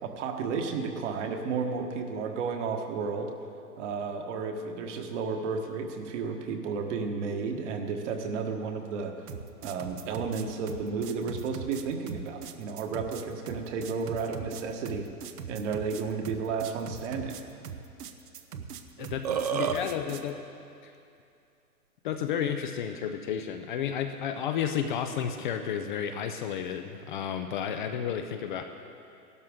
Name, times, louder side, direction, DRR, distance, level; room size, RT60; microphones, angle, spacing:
voice 1, 0.0-3.3 3.8-9.1 9.6-15.1 15.5-17.4, right 5 dB, 50° right, 4 dB, 1.5 m, -32 dB
sound 1, 9.3-20.3, right 7 dB, 75° right, 1.0 m, -41 dB
voice 2, 19.0-20.4 20.8-20.9 22.0-28.6, left 8 dB, 35° left, 6 dB, 0.5 m, -32 dB
Burping eructation, 19.0-19.8, right 7 dB, 30° right, 0.3 m, -28 dB
17.0 x 12.5 x 3.7 m, 2.6 s
hypercardioid pair, 125°, 47 cm